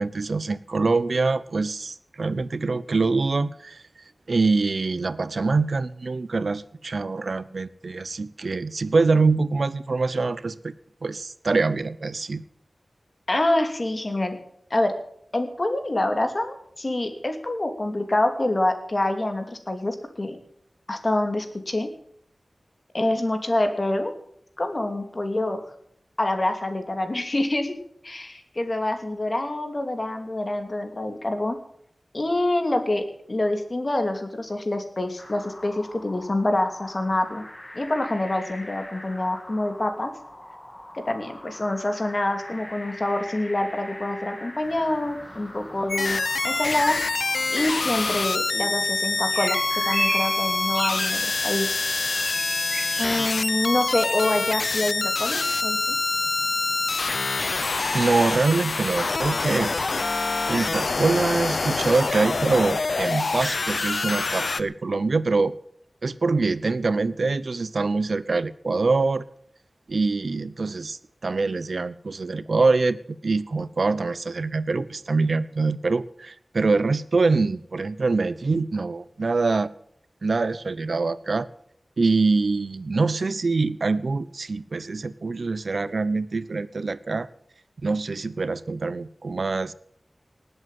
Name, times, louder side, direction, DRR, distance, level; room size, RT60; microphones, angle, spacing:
voice 1, 0.0-3.8 4.3-10.7 11.0-12.4 57.9-59.7 60.1-65.5 66.0-69.2 69.9-73.0 73.2-79.7 80.2-81.5 82.0-87.3 87.8-89.7, right 3 dB, 75° right, 17 dB, 0.8 m, -24 dB
voice 2, 13.3-14.4 14.7-15.0 15.3-20.4 20.9-21.9 22.9-24.1 24.6-25.6 26.2-27.8 28.0-31.6 32.1-37.4 37.7-40.1 40.9-47.2 47.5-49.6 49.8-51.8 53.0-56.0, left 1 dB, 45° left, 6 dB, 2.7 m, -26 dB
sound 1, 35.2-47.5, left 1 dB, 20° left, 1.7 m, -43 dB
sound 2, 44.6-59.8, right 1 dB, 30° right, 1.6 m, -38 dB
sound 3, 45.9-64.6, left 3 dB, 70° left, 0.6 m, -26 dB
19.0 x 8.1 x 7.7 m, 0.68 s
wide cardioid pair, 60°, 0 cm